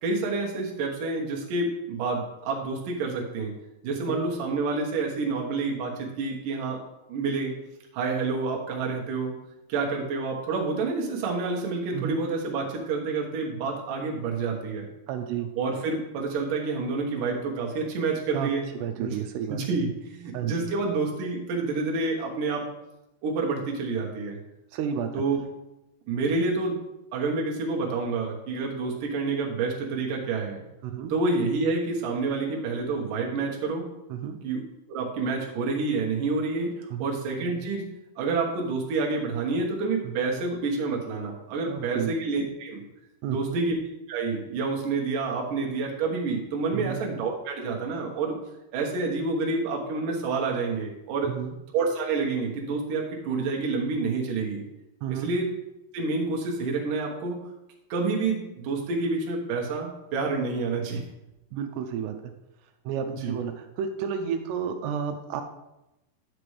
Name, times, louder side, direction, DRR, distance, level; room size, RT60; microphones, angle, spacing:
voice 1, 0.0-3.5 3.8-6.8 7.1-7.5 7.9-9.3 9.7-14.9 15.6-18.7 19.0-19.2 19.5-22.7 23.2-24.4 25.1-25.4 26.1-26.8 27.1-30.6 31.1-33.9 34.4-34.6 34.9-36.7 37.0-37.9 38.2-42.8 43.3-43.7 44.1-48.4 48.7-51.3 51.7-54.6 55.1-55.5 55.9-57.4 57.9-61.0 63.1-63.3, right 3 dB, 65° right, -1 dB, 2.7 m, -28 dB
voice 2, 11.9-12.3 15.1-15.5 18.3-18.5 18.8-19.6 20.3-20.7 24.7-25.2 30.8-31.1 34.1-34.4 36.9-37.1 40.0-40.2 41.7-42.1 43.2-43.6 46.7-47.0 51.2-51.6 55.0-55.3 61.5-62.3 62.9-65.4, right 8 dB, 90° right, 6 dB, 2.7 m, -31 dB
10.5 x 6.8 x 3.2 m, 0.92 s
omnidirectional pair, 4.7 m